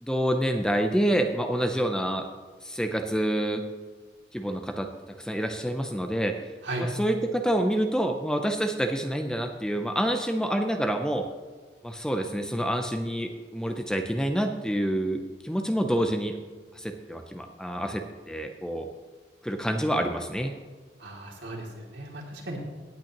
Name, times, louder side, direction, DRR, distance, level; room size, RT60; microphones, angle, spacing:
voice 1, 0.0-2.3 2.6-3.6 4.3-4.9 5.2-6.4 6.8-11.3 11.8-16.4 16.8-18.9 19.4-20.5, equal, 5° left, 5 dB, 0.6 m, -27 dB
voice 2, 21.0-22.6, right 2 dB, 75° right, -1 dB, 2.6 m, -36 dB
17.0 x 9.1 x 3.0 m, 1.4 s
head